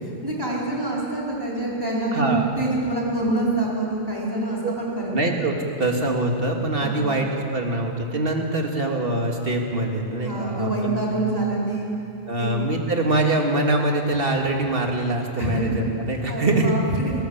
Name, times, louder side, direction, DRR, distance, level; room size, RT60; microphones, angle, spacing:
voice 1, 0.0-5.1 6.8-7.1 10.2-11.9 12.4-12.5 15.4-15.6 16.3-17.1, right 2 dB, 20° right, -5 dB, 4.4 m, -26 dB
voice 2, 2.1-2.5 4.6-4.7 5.1-11.0 12.3-16.8, right 2 dB, 55° right, 1 dB, 2.3 m, -24 dB
21.0 x 17.5 x 7.3 m, 2.7 s
omnidirectional pair, 1.2 m